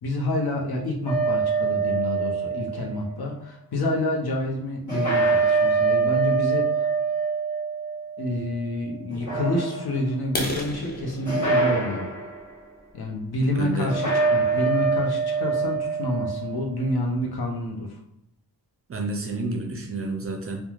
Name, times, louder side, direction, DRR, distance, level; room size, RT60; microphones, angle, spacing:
voice 1, 0.0-6.9 8.2-12.1 12.9-18.0, left 1 dB, 75° left, 0 dB, 0.7 m, -28 dB
sound 1, 1.1-3.1 4.9-8.6 9.1-10.1 11.3-12.4 13.9-16.6, right 4 dB, 50° left, 1.0 m, -24 dB
sound 2, 10.2-14.0 14.5-14.7 15.2-15.3 15.7-15.9 16.2-16.3 16.7-16.8 17.1-17.6, left 1 dB, 25° left, 0.4 m, -35 dB
voice 2, 13.5-13.9 18.9-20.7, right 2 dB, 35° right, 3 dB, 0.4 m, -30 dB
3.0 x 2.2 x 2.4 m, 0.79 s
wide cardioid pair, 140°, 39 cm